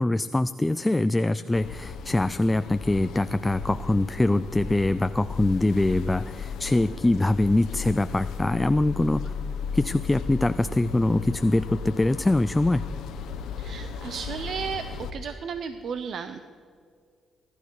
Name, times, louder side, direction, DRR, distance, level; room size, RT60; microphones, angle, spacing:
voice 1, 0.0-9.3 9.7-12.8, left 2 dB, 15° left, 13 dB, 0.4 m, -23 dB
sound 1, 1.5-15.1, left 5 dB, 80° left, 1.0 m, -36 dB
voice 2, 13.6-16.4, right 6 dB, 60° right, 10 dB, 0.7 m, -34 dB
19.0 x 12.0 x 4.7 m, 2.1 s
cardioid pair, 90°, 0 cm